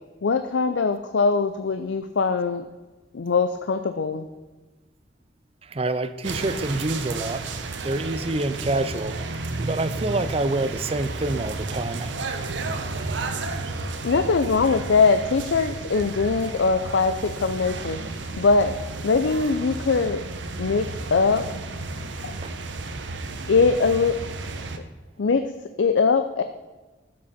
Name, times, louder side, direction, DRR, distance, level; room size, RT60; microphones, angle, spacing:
voice 1, 0.2-2.6 3.1-4.2 14.0-18.7 19.0-20.2 20.6-21.4 22.2-22.3 23.5-24.2 25.2-25.4 25.8-26.4, left 4 dB, 85° left, 9 dB, 0.5 m, -22 dB
voice 2, 5.7-9.2 9.6-12.1 22.4-22.5, right 2 dB, 30° right, 12 dB, 0.5 m, -27 dB
sound 1, 6.2-24.8, right 3 dB, 85° right, 0.9 m, -32 dB
13.5 x 7.5 x 4.3 m, 1.2 s
head